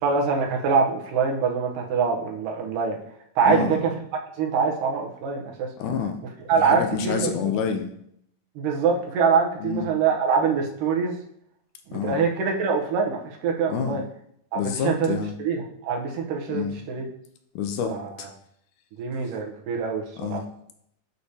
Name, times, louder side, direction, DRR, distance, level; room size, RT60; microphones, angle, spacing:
voice 1, 0.0-3.0 3.4-3.9 4.4-5.7 6.5-7.3 8.6-11.1 11.9-14.0 14.5-17.0 17.9-18.3 19.0-20.0 20.3-20.4, right 5 dB, 80° right, 0 dB, 2.5 m, -24 dB
voice 2, 5.8-6.2 6.5-7.9 9.6-9.9 11.9-12.2 13.7-14.0 14.6-15.3 16.5-16.7 17.6-18.3 20.2-20.4, left 7 dB, 80° left, 5 dB, 2.0 m, -28 dB
6.7 x 6.4 x 2.8 m, 0.71 s
omnidirectional pair, 3.7 m